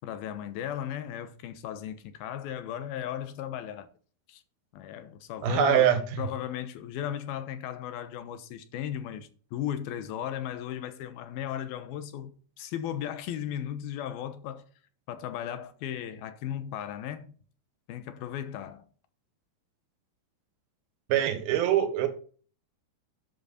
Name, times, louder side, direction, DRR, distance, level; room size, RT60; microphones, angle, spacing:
voice 1, 0.0-3.9 4.3-4.4 4.7-5.9 6.2-14.7 15.1-17.3 17.9-18.9, left 10 dB, 75° left, 2.8 m, -36 dB
voice 2, 5.4-6.0 21.1-22.1, right 9 dB, 70° right, 3.3 m, -23 dB
11.0 x 7.8 x 4.2 m
omnidirectional pair, 4.6 m